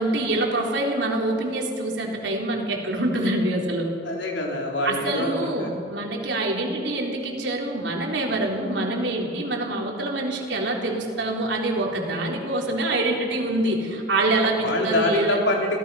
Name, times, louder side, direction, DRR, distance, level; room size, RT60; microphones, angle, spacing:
voice 1, 0.0-3.9 4.8-15.4, right 2 dB, 85° right, -1 dB, 3.9 m, -25 dB
voice 2, 4.0-5.7 14.6-15.8, left 1 dB, 90° left, 0 dB, 4.0 m, -25 dB
27.0 x 17.0 x 5.7 m, 2.4 s
head